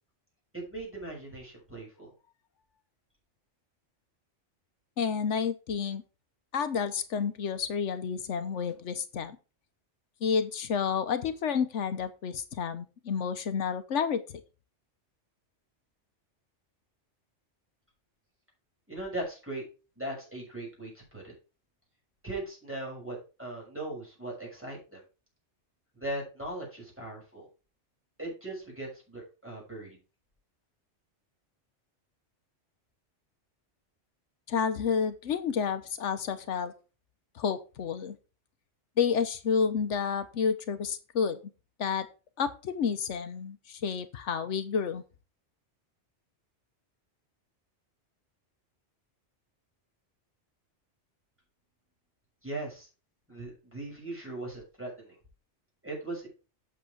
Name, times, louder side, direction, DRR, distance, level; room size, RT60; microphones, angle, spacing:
voice 1, 0.5-2.1 18.9-19.6 20.0-21.3 22.2-25.0 25.9-27.5 28.2-30.0 52.4-52.9 53.3-55.1 55.8-56.3, right 2 dB, 10° right, -2 dB, 6.3 m, -39 dB
voice 2, 5.0-6.0 6.5-9.4 10.2-14.2 34.5-36.7 37.3-38.2 39.0-41.4 41.8-42.1 42.4-45.0, left 6 dB, 80° left, 11 dB, 1.2 m, -30 dB
8.6 x 6.7 x 4.6 m, 0.32 s
omnidirectional pair, 1.2 m